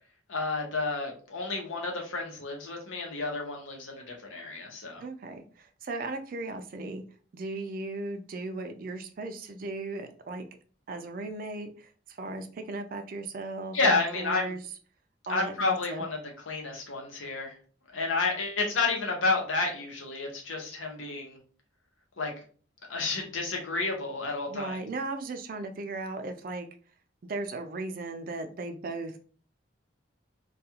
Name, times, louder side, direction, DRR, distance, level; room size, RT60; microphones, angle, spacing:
voice 1, 0.3-5.0 13.7-14.5 15.3-16.2 16.5-17.5 17.9-21.4 22.2-22.3 22.9-24.8, left 3 dB, 85° left, 1 dB, 0.8 m, -30 dB
voice 2, 5.0-7.0 7.3-10.5 10.9-14.6 15.3-16.1 24.5-26.7 27.2-29.2, right 2 dB, 45° right, 7 dB, 0.3 m, -37 dB
2.3 x 2.3 x 2.8 m, 0.41 s
head